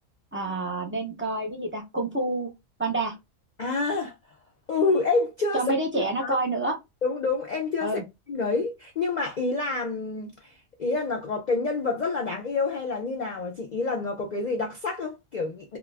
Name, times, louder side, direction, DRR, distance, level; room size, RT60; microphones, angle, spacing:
voice 1, 0.3-2.5 2.8-3.2 5.5-6.8 7.8-8.0, right 2 dB, 15° right, 0.5 m, -28 dB
voice 2, 3.6-4.1 4.7-5.7 6.2-6.4 7.0-8.0 8.3-10.5 10.8-15.8, left 3 dB, 70° left, 0.4 m, -27 dB
2.4 x 2.2 x 3.2 m
omnidirectional pair, 1.4 m